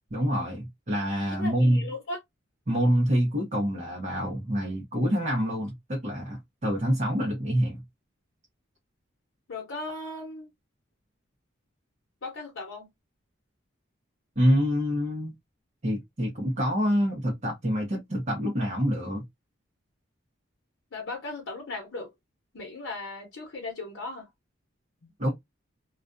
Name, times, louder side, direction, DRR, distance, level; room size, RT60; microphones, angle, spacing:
voice 1, 0.1-1.9 2.7-7.8 14.4-15.3 15.8-19.2 25.2-25.3, equal, 35° right, 0.7 m, -26 dB
voice 2, 1.4-2.2 9.5-10.5 12.2-12.9 20.9-22.1 22.5-24.3, left 2 dB, 85° left, 0.8 m, -37 dB
2.4 x 2.2 x 2.4 m
head